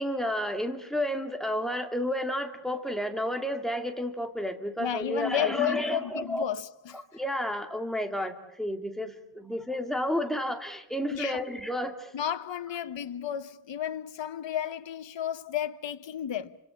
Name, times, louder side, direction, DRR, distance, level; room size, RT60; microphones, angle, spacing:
voice 1, 0.0-6.4 7.1-12.1, equal, ahead, 2.4 m, -31 dB
voice 2, 4.8-7.0 11.1-11.4 12.1-16.6, left 10 dB, 75° left, 1.1 m, -32 dB
29.5 x 26.0 x 7.1 m
wide cardioid pair, 145°, 44 cm